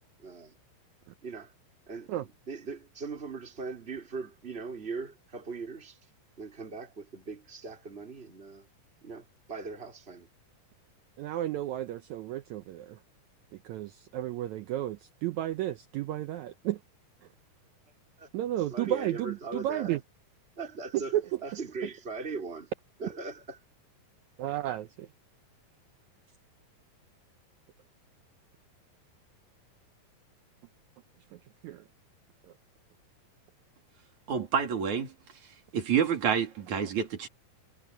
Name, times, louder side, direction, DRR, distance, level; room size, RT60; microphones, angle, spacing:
voice 1, 0.2-0.6 1.2-1.5 1.9-6.0 6.4-8.7 9.0-10.3 18.2-18.3 18.7-19.9 20.6-21.2 21.4-22.7 23.0-23.6, right 4 dB, 15° right, 4.0 m, -40 dB
voice 2, 11.2-13.0 13.6-16.8 18.3-20.0 21.1-21.2 24.4-25.1 31.6-31.8, right 13 dB, 85° right, 1.6 m, -32 dB
voice 3, 34.3-35.1 35.7-37.3, right 7 dB, 55° right, 4.3 m, -28 dB
omnidirectional pair, 4.1 m